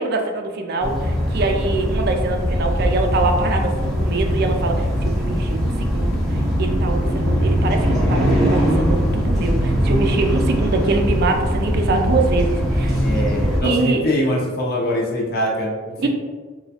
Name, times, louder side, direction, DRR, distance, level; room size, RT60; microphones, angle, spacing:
voice 1, 0.0-13.0 13.6-14.0 16.0-16.1, right 3 dB, 55° right, 4 dB, 0.3 m, -24 dB
sound 1, 0.8-13.6, equal, ahead, 0.6 m, -20 dB
voice 2, 7.6-8.1 13.0-16.1, equal, 55° left, -3 dB, 0.6 m, -23 dB
3.0 x 2.2 x 2.7 m, 1.4 s
head